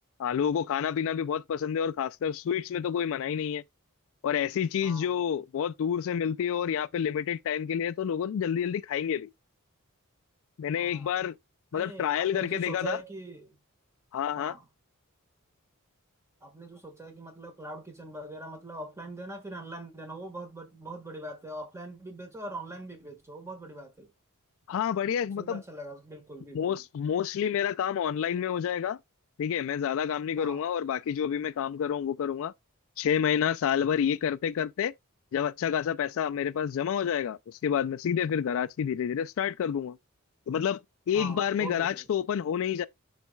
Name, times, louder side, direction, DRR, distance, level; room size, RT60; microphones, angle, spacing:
voice 1, 0.2-3.6 4.2-9.3 10.6-11.3 11.7-13.0 14.1-14.5 24.7-25.6 26.5-29.0 29.4-32.5 33.0-34.9 35.3-40.0 40.5-40.8 41.1-42.8, left 8 dB, 65° left, 0.3 m, -29 dB
voice 2, 4.8-5.2 10.8-11.2 11.7-13.6 14.4-14.7 16.4-24.1 25.4-26.8 27.8-27.9 30.4-30.6 41.1-42.1, right 1 dB, 15° right, 1.5 m, -42 dB
10.5 x 4.1 x 2.2 m
head